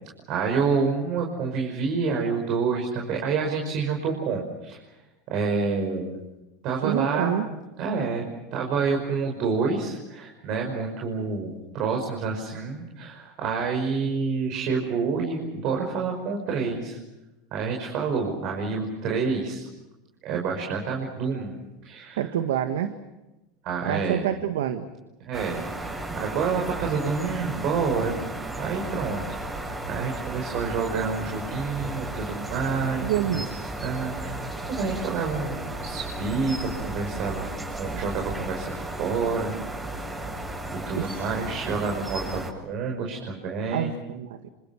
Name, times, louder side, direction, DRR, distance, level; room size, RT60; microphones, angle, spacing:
voice 1, 0.3-4.8 5.3-6.2 6.6-7.3 7.8-8.3 8.5-17.0 17.5-19.7 20.2-22.2 23.6-24.2 25.2-28.2 28.6-29.4 29.9-33.1 33.8-34.4 34.7-37.5 37.8-39.5 39.9-40.1 40.7-44.0, right 5 dB, 50° right, 1 dB, 5.8 m, -28 dB
voice 2, 6.8-7.5 22.2-22.9 23.9-24.9 33.0-33.5 40.9-41.3 43.7-44.5, right 10 dB, 85° right, 8 dB, 1.6 m, -27 dB
sound 1, 25.3-42.5, right 2 dB, 15° right, 7.9 m, -34 dB
28.0 x 27.5 x 6.3 m, 1.0 s
supercardioid pair, 120°, 0 cm